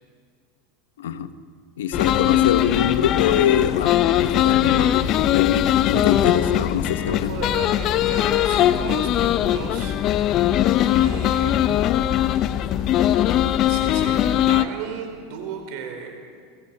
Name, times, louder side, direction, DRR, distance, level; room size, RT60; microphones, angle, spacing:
voice 1, 1.0-1.3 1.8-3.9 4.2-7.4, left 9 dB, 90° left, 10 dB, 1.3 m, -24 dB
sound 1, 1.9-14.6, left 11 dB, 40° left, 0.8 m, -20 dB
voice 2, 7.0-10.0 10.8-11.6 13.6-16.1, right 6 dB, 60° right, 5 dB, 4.9 m, -35 dB
23.0 x 15.0 x 8.8 m, 2.1 s
supercardioid pair, 130°, 0 cm